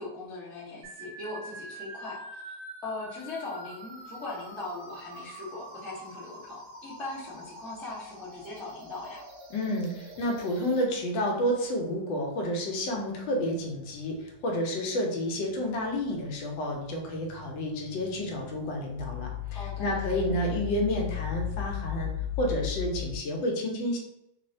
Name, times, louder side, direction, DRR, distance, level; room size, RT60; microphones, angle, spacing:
voice 1, 0.0-2.6 2.8-9.2 19.5-20.3, left 2 dB, ahead, -9 dB, 0.4 m, -40 dB
sound 1, 0.8-10.8, right 1 dB, 65° right, 1.2 m, -46 dB
sound 2, 4.4-4.5 5.1-5.2 6.1-6.2 9.4-9.8 11.3-11.4 12.2-23.2, left 11 dB, 80° right, 1.5 m, -38 dB
voice 2, 9.5-22.1 22.4-24.0, equal, 80° left, 0 dB, 1.4 m, -30 dB
3.7 x 2.0 x 2.6 m, 0.84 s
omnidirectional pair, 2.0 m